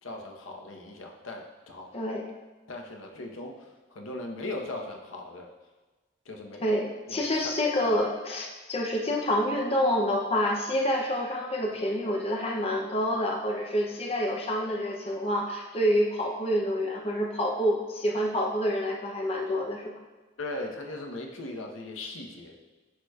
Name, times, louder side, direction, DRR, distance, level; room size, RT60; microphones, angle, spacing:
voice 1, 0.0-1.9 2.7-5.5 6.3-6.6 7.1-7.6 7.8-7.9 20.4-22.5, left 2 dB, 90° left, 1 dB, 0.9 m, -39 dB
voice 2, 1.9-2.3 6.6-19.8, equal, 30° left, 0 dB, 0.6 m, -27 dB
10.5 x 4.8 x 2.3 m, 1.2 s
head